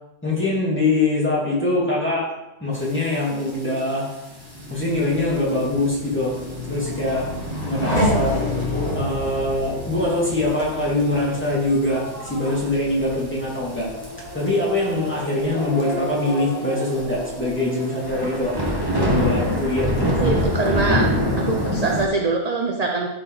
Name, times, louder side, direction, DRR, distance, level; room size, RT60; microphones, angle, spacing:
voice 1, 0.2-2.3 2.6-4.1 4.7-6.3 6.6-7.3 7.6-8.3 8.9-13.9 14.3-18.5 19.0-20.2, left 2 dB, 10° left, -6 dB, 2.6 m, -23 dB
sound 1, 3.4-3.5 3.8-4.1 4.8-5.0 5.6-5.7 6.3-6.4 6.8-6.9 7.1-7.2 8.3-8.5 8.9-9.0 9.9-10.0 10.6-11.0 11.4-11.5 12.1-12.7 13.8-14.1 14.4-14.5 14.8-14.9 15.1-15.2 15.8-15.9 16.3-16.4 16.9-22.1, equal, 20° right, 1.7 m, -23 dB
Car passing by, 4.2-16.5, left 2 dB, 65° left, 3.3 m, -34 dB
Race car auto racing / Accelerating revving vroom, 6.4-19.7 20.1-20.8, equal, 30° left, 3.4 m, -31 dB
voice 2, 20.2-21.1 21.5-23.1, right 3 dB, 40° right, 1 dB, 0.7 m, -23 dB
12.5 x 4.7 x 4.1 m, 0.95 s
omnidirectional pair, 1.3 m